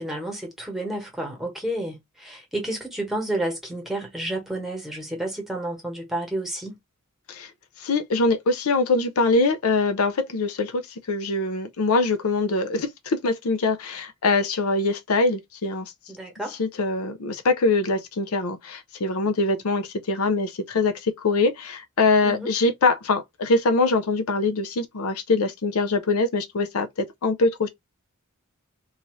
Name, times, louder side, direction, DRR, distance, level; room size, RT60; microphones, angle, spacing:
voice 1, 0.0-6.8 16.1-16.6 22.2-22.5, right 1 dB, ahead, 1.2 m, -30 dB
voice 2, 7.8-10.8 11.1-15.9 16.6-27.7, left 3 dB, 75° left, 0.6 m, -23 dB
2.7 x 2.4 x 3.0 m
head